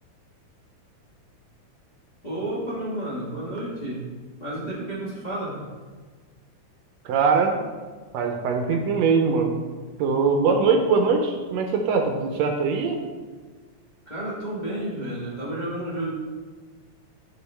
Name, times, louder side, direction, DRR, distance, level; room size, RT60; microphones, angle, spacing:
voice 1, 2.2-4.1 4.4-5.6 14.1-16.1, right 1 dB, 85° left, -8 dB, 0.4 m, -31 dB
voice 2, 7.0-7.6 8.1-9.5 10.0-13.0, right 5 dB, 80° right, 3 dB, 1.6 m, -22 dB
8.2 x 4.8 x 3.3 m, 1.4 s
omnidirectional pair, 3.4 m